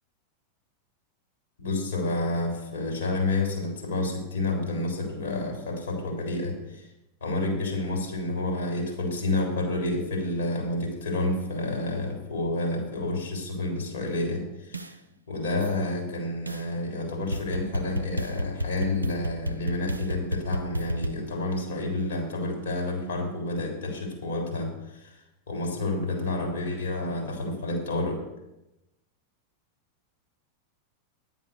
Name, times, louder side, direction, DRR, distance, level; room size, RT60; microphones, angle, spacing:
voice 1, 1.6-6.9 7.2-15.0 15.3-25.2 25.5-28.2, left 2 dB, 65° left, 2 dB, 3.6 m, -29 dB
sound 1, 14.7-14.9 15.6-15.7 16.5-16.6 17.3-21.1, equal, 80° right, 0.5 m, -31 dB
10.5 x 8.0 x 6.5 m, 0.92 s
figure-of-eight pair, 90°, 0 cm